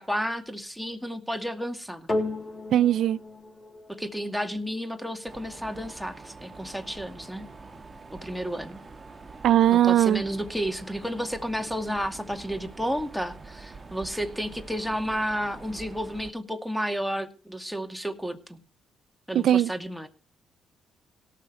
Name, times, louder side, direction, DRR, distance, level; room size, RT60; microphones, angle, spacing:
voice 1, 0.0-2.1 3.9-7.5 8.1-8.8 9.7-18.6 19.3-20.1, equal, ahead, 2.4 m, -32 dB
sound 1, 2.1-10.6 11.4-11.5, left 2 dB, 25° left, 5.9 m, -38 dB
voice 2, 2.7-3.2 9.4-10.2 19.3-19.7, right 11 dB, 70° right, 0.7 m, -20 dB
Mechanisms, 5.3-16.3, right 4 dB, 25° right, 2.3 m, -45 dB
17.5 x 6.7 x 6.7 m
cardioid pair, 90°, 0 cm